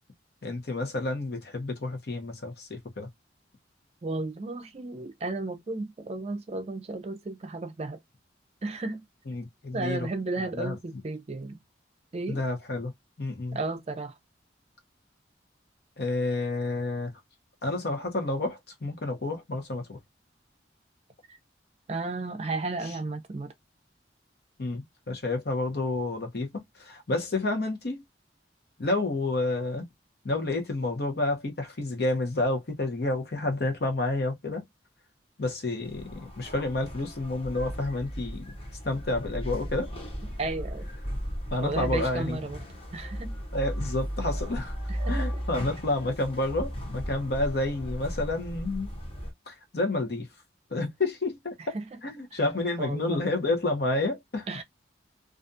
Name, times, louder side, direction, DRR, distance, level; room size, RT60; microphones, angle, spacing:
voice 1, 0.4-3.1 9.3-10.1 10.4-10.8 12.3-12.9 13.2-13.6 16.0-17.1 17.6-20.0 22.8-22.9 24.6-28.0 28.8-29.8 30.2-34.6 35.4-38.5 38.8-39.9 41.5-42.4 43.5-44.7 45.1-48.9 49.5-50.3 50.7-51.8 52.0-54.5, left 2 dB, 60° left, 0.8 m, -30 dB
voice 2, 4.0-8.0 8.6-9.0 9.7-11.6 12.1-12.4 13.5-14.1 21.3-21.4 21.9-23.5 40.4-40.9 41.6-42.6 42.9-43.4 44.9-45.3 51.7-51.8 52.3-52.4 52.8-53.2 54.5-54.6, right 3 dB, 35° right, 0.4 m, -33 dB
sound 1, 35.8-49.3, equal, 30° left, 0.8 m, -35 dB
2.5 x 2.2 x 2.5 m
head